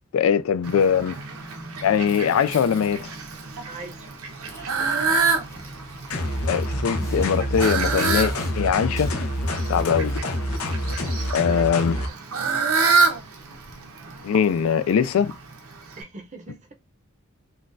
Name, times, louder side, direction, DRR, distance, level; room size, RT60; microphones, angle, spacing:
voice 1, 0.1-1.2 1.8-3.1 6.5-9.1 9.7-10.2 11.3-12.0 14.2-15.3, left 7 dB, 70° left, 0.3 m, -21 dB
Fowl, 0.6-16.0, right 4 dB, 80° right, 0.9 m, -28 dB
voice 2, 3.6-4.2 9.7-10.0 11.4-12.2 16.0-16.7, right 3 dB, 35° right, 0.7 m, -41 dB
Dog, 4.4-9.3, left 1 dB, 15° left, 0.8 m, -44 dB
sound 1, 6.1-12.1, left 1 dB, 90° left, 0.7 m, -27 dB
3.8 x 2.4 x 2.5 m
head